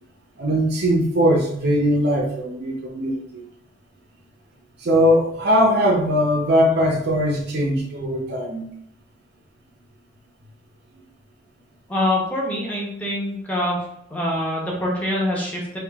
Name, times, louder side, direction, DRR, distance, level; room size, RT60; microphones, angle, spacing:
voice 1, 0.4-3.4 4.8-8.7, equal, 55° right, -1 dB, 0.7 m, -20 dB
voice 2, 11.9-13.8 14.1-15.8, left 1 dB, 10° left, -4 dB, 0.9 m, -24 dB
3.6 x 2.4 x 3.5 m, 0.71 s
head